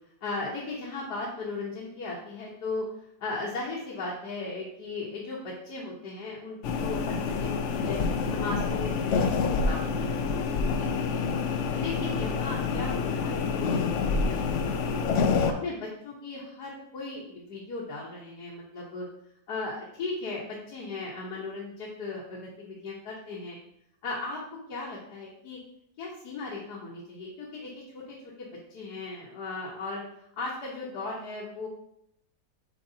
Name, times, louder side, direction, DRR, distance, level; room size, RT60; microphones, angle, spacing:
voice 1, 0.2-2.8 3.2-11.3 11.7-15.1 15.5-19.1 19.5-23.6 24.0-24.4 24.7-25.6 26.0-30.0 30.4-31.7, left 3 dB, 65° left, -5 dB, 1.6 m, -37 dB
sound 1, 6.6-15.5, left 5 dB, 85° left, 0.6 m, -27 dB
7.9 x 4.5 x 2.7 m, 0.74 s
omnidirectional pair, 1.9 m